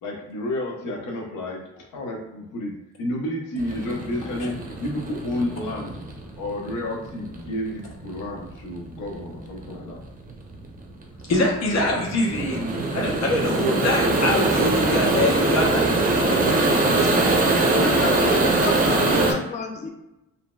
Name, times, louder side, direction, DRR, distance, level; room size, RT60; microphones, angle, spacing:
voice 1, 0.0-6.0 6.4-10.0 11.9-12.0 18.0-19.4, left 1 dB, 85° left, 0 dB, 0.7 m, -31 dB
sound 1, 3.6-19.3, right 2 dB, 30° right, 0.6 m, -22 dB
voice 2, 11.3-17.2 17.7-18.0, left 1 dB, 60° left, -1 dB, 0.9 m, -25 dB
voice 3, 17.7-19.9, left 3 dB, 25° left, 2 dB, 0.4 m, -31 dB
2.9 x 2.6 x 2.2 m, 0.94 s
cardioid pair, 90°, 30 cm